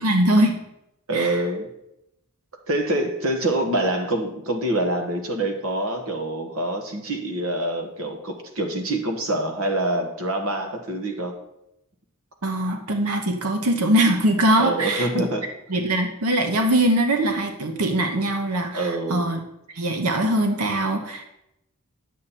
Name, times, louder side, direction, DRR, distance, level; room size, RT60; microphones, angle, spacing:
voice 1, 0.0-0.5 1.1-1.4 12.4-15.1 15.7-19.4 19.7-21.2, right 1 dB, 90° right, 4 dB, 1.1 m, -22 dB
voice 2, 1.1-1.7 2.7-11.3 14.6-15.5 18.7-19.3, right 1 dB, 70° right, 4 dB, 1.5 m, -25 dB
9.5 x 7.6 x 4.3 m, 0.84 s
head